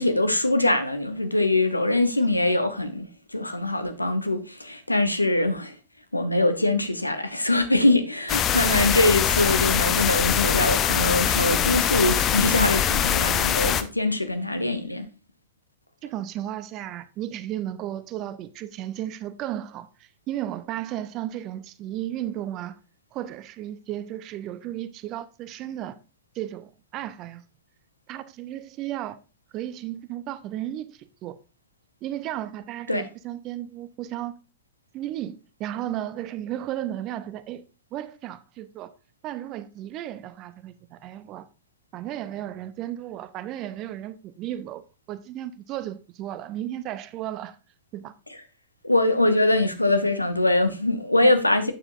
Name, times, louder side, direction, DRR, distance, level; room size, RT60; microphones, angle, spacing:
voice 1, 0.0-3.1 3.3-5.8 6.1-15.1 32.9-33.0 48.8-51.7, left 2 dB, 85° left, 0.8 m, -23 dB
sound 1, 8.3-13.8, left 9 dB, 30° left, 0.6 m, -23 dB
voice 2, 16.0-22.8 23.1-26.0 26.3-27.4 28.1-29.2 29.5-31.4 32.0-34.4 34.9-37.6 37.9-38.9 39.2-41.5 41.9-44.8 45.1-47.6 47.9-48.1 51.2-51.3, right 12 dB, 35° right, 0.6 m, -34 dB
8.8 x 7.1 x 2.5 m
figure-of-eight pair, 90°, 0 cm